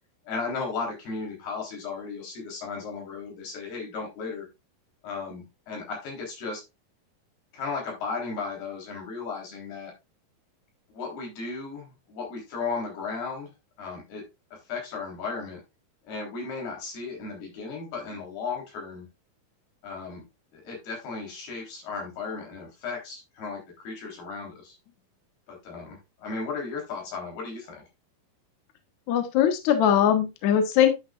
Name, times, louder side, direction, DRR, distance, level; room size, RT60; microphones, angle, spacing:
voice 1, 0.3-4.5 5.0-6.6 7.5-9.9 10.9-13.5 13.8-14.2 14.7-15.6 16.1-19.1 19.8-20.2 20.5-24.8 25.5-27.9, left 4 dB, 85° left, 0 dB, 5.6 m, -35 dB
voice 2, 29.1-31.0, left 9 dB, 60° left, 6 dB, 2.2 m, -21 dB
11.0 x 6.4 x 2.4 m, 0.23 s
omnidirectional pair, 4.4 m